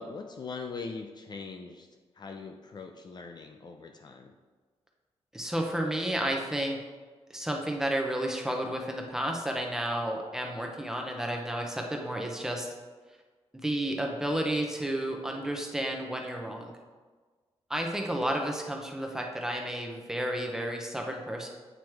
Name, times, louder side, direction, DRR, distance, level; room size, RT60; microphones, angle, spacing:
voice 1, 0.0-1.9 2.1-4.3, left 4 dB, 40° left, 4 dB, 0.5 m, -41 dB
voice 2, 5.3-6.8 7.3-12.7 13.6-16.7 17.7-21.5, right 1 dB, 5° right, 1 dB, 0.9 m, -31 dB
8.9 x 3.1 x 4.6 m, 1.4 s
cardioid pair, 105°, 11 cm